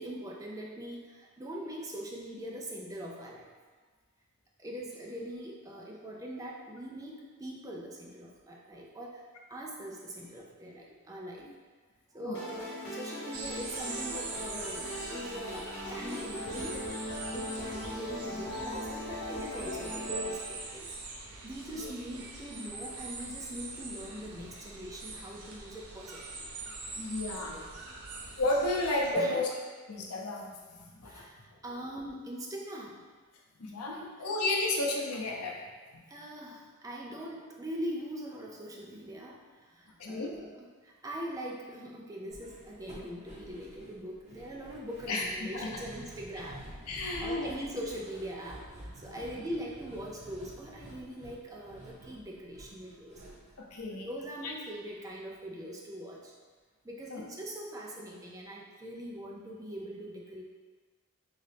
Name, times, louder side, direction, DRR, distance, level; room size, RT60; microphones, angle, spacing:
voice 1, 0.0-3.4 4.6-9.2 9.5-11.5 12.1-16.8 17.3-20.9 21.4-26.5 27.5-27.6 29.1-29.4 31.1-31.3 31.6-33.0 33.9-34.1 36.1-46.9 47.2-48.6 49.0-53.2 54.0-56.3 56.8-60.4, equal, 15° right, -2 dB, 0.4 m, -42 dB
sound 1, 12.3-20.3, left 1 dB, 50° left, 1.0 m, -39 dB
sound 2, 13.3-29.1, right 3 dB, 80° right, 0.6 m, -43 dB
voice 2, 26.9-27.6 27.8-29.5 29.9-31.3 33.6-35.6 35.9-36.0 40.0-40.3 45.1-45.7 46.9-47.5 53.6-54.1 54.4-54.5 57.1-57.2, left 2 dB, 90° left, -1 dB, 0.6 m, -33 dB
sound 3, 42.3-54.6 54.9-55.0 55.3-55.4, right 1 dB, 30° right, 0.9 m, -50 dB
3.9 x 2.7 x 3.3 m, 1.4 s
head